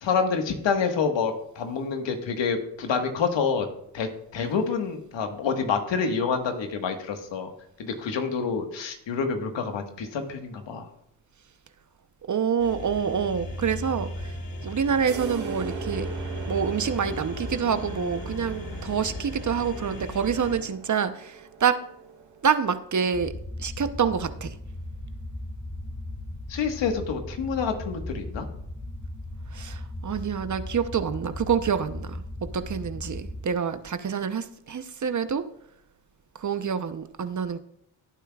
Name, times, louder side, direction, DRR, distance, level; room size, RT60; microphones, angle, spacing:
voice 1, 0.0-3.7 3.9-7.5 7.8-10.9 26.5-28.5, left 5 dB, 70° left, 5 dB, 1.6 m, -27 dB
voice 2, 12.3-14.3 14.6-16.1 16.5-21.8 22.4-23.3 23.6-24.5 29.5-35.4 36.4-37.6, right 7 dB, 40° right, 11 dB, 0.9 m, -27 dB
sound 1, 12.6-20.6, left 1 dB, 45° left, 2.0 m, -36 dB
sound 2, 15.1-22.6, right 4 dB, 75° right, 3.7 m, -40 dB
sound 3, 23.1-33.4, left 1 dB, 25° left, 2.0 m, -37 dB
16.5 x 9.0 x 2.4 m, 0.73 s
supercardioid pair, 55°, 46 cm